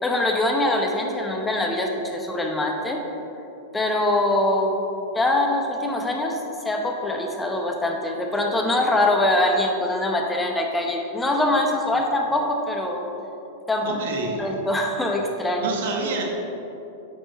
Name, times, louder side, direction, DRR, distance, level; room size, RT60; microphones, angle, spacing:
voice 1, 0.0-3.0 3.7-4.8 5.1-6.4 6.6-13.1 13.7-14.0 14.4-15.7, left 1 dB, 10° left, 2 dB, 0.9 m, -23 dB
voice 2, 13.8-14.5 15.6-16.2, right 3 dB, 75° right, 0 dB, 1.4 m, -28 dB
9.7 x 4.7 x 4.2 m, 2.9 s
hypercardioid pair, 120°, 0 cm